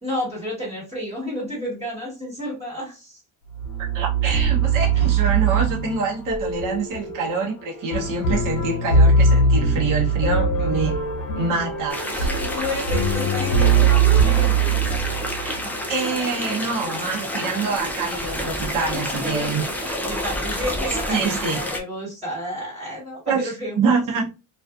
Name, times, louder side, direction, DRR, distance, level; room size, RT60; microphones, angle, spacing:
voice 1, 0.0-3.2 12.3-15.0 19.2-19.7 20.0-23.8, equal, 20° right, 1.4 m, -31 dB
sound 1, 3.5-15.6, right 4 dB, 70° left, 0.7 m, -21 dB
voice 2, 3.8-11.0 11.3-12.3 15.4-15.6 15.9-20.0 20.9-21.6 23.3-24.3, right 4 dB, 60° right, 0.9 m, -26 dB
sound 2, 11.9-21.8, left 1 dB, 5° left, 0.4 m, -29 dB
2.5 x 2.4 x 2.3 m
cardioid pair, 125°, 36 cm